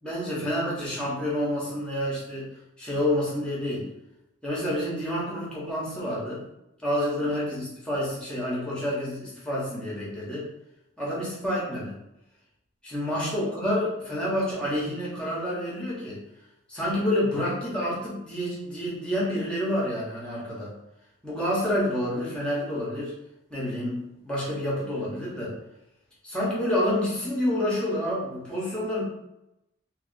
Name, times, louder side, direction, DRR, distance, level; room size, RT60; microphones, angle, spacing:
voice 1, 0.0-2.5 2.8-3.9 4.4-6.4 6.8-10.4 11.0-12.0 12.8-16.2 16.7-20.7 21.2-23.1 23.5-25.5 26.2-29.0, left 1 dB, 5° left, -6 dB, 1.0 m, -28 dB
2.9 x 2.7 x 2.6 m, 0.88 s
head